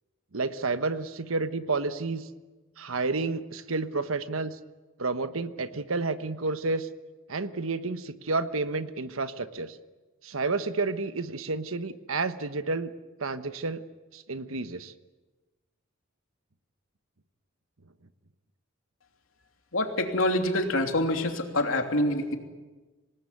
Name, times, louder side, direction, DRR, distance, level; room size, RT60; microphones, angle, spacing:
voice 1, 0.3-2.3 2.8-4.6 5.0-6.9 7.3-9.8 10.2-12.9 13.2-13.8 14.1-14.9, right 3 dB, 90° right, 11 dB, 1.2 m, -30 dB
voice 2, 19.7-22.4, left 1 dB, 85° left, 4 dB, 3.1 m, -26 dB
26.0 x 19.5 x 9.4 m, 1.2 s
head